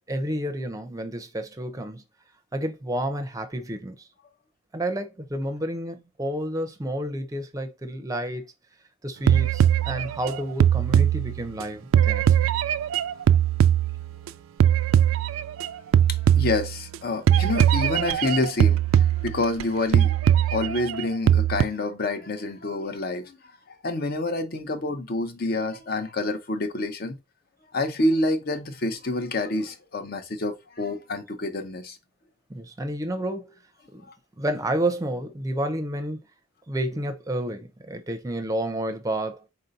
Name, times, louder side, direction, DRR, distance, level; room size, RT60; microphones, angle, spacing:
voice 1, 0.1-2.0 2.5-4.0 4.7-8.5 9.0-12.2 32.5-33.5 33.9-34.0 34.4-36.2 36.7-39.4, right 1 dB, 15° right, 0.5 m, -30 dB
sound 1, 9.3-11.6 11.9-14.3 14.6-15.7 15.9-17.0 17.3-19.6 19.9-21.6, right 10 dB, 90° right, 0.3 m, -20 dB
voice 2, 16.1-23.4 23.8-27.2 27.7-32.0, left 2 dB, 50° left, 0.7 m, -28 dB
4.1 x 2.6 x 4.0 m
head